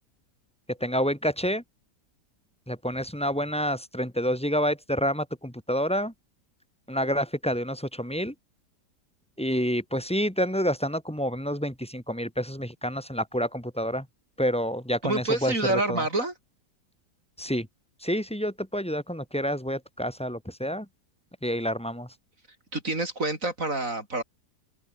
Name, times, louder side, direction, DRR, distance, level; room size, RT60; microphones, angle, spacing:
voice 1, 0.7-1.6 2.7-6.1 6.9-8.3 9.4-14.1 14.4-16.0 17.4-17.7 18.0-20.9 21.4-22.1, equal, 5° left, 3.0 m, -28 dB
voice 2, 15.0-16.3 22.7-24.2, right 2 dB, 50° right, 6.0 m, -27 dB
omnidirectional pair, 1.8 m